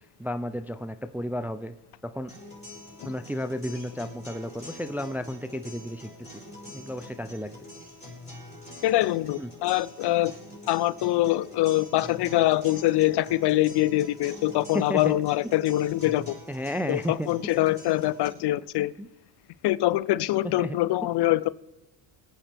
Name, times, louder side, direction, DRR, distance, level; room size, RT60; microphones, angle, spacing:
voice 1, 0.2-1.7 2.1-2.3 3.1-6.4 6.7-7.6 9.4-9.5 14.7-15.1 16.5-17.3 19.0-19.1 20.6-20.8, equal, 5° right, 0.3 m, -32 dB
sound 1, 2.3-18.3, left 1 dB, 15° left, 5.3 m, -45 dB
voice 2, 8.8-10.3 10.7-16.4 16.9-18.9 19.6-21.5, left 16 dB, 55° left, 0.5 m, -24 dB
23.0 x 9.0 x 3.4 m
cardioid pair, 90°, 48 cm